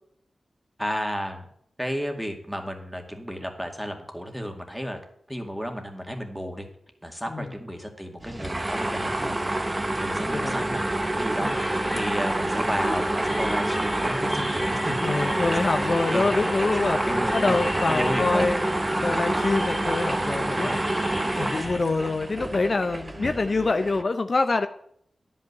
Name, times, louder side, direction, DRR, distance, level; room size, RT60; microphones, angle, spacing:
voice 1, 0.8-1.5 1.8-5.0 5.3-6.7 7.0-15.0 15.5-15.6 16.1-16.3 17.0-17.6 17.9-18.4 20.6-20.7 23.2-23.3, equal, 5° right, 3 dB, 2.0 m, -32 dB
sound 1, 8.2-24.0, right 1 dB, 25° right, 0.9 m, -27 dB
voice 2, 10.3-10.7 11.4-11.6 15.0-17.1 17.3-18.8 19.0-24.7, left 3 dB, 50° left, 8 dB, 0.6 m, -26 dB
sound 2, 11.4-21.8, left 1 dB, 25° left, 2.5 m, -36 dB
10.5 x 5.6 x 8.0 m, 0.68 s
wide cardioid pair, 65°, 0 cm